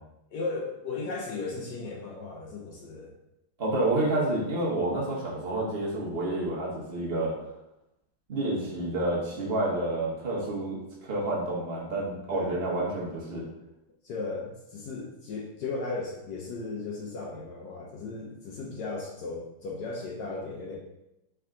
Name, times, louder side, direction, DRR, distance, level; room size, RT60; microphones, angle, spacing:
voice 1, 0.3-3.1 12.3-12.6 14.0-20.8, left 3 dB, 75° left, -2 dB, 0.9 m, -36 dB
voice 2, 3.6-7.3 8.3-13.4, right 2 dB, 50° right, -4 dB, 0.7 m, -29 dB
3.5 x 3.5 x 3.6 m, 0.90 s
omnidirectional pair, 2.4 m